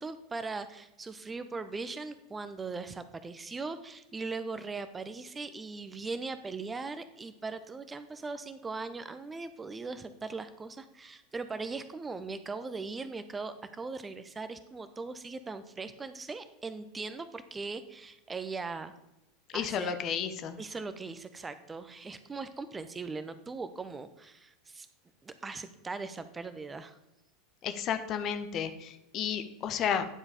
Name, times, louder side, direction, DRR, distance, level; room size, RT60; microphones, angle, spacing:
voice 1, 0.0-18.9 19.5-20.0 20.6-24.9 25.2-27.0, right 4 dB, 15° right, 11 dB, 0.6 m, -39 dB
voice 2, 19.5-20.6 27.6-30.1, left 8 dB, 40° left, 10 dB, 0.7 m, -32 dB
9.8 x 4.8 x 4.9 m, 0.89 s
figure-of-eight pair, 80°, 0 cm